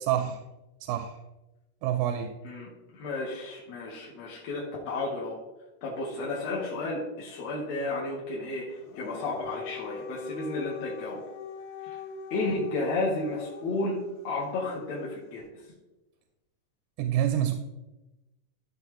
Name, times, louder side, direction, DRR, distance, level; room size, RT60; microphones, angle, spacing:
voice 1, 0.1-0.4 0.8-1.1 1.8-2.3 17.0-17.5, right 11 dB, 90° right, 7 dB, 2.2 m, -27 dB
voice 2, 2.4-5.4 5.8-11.2 11.8-12.0 12.3-15.4, left 2 dB, 60° left, -4 dB, 2.2 m, -32 dB
Dog, 8.8-14.0, left 5 dB, 90° left, 2.6 m, -42 dB
12.5 x 5.5 x 3.1 m, 1.0 s
omnidirectional pair, 3.8 m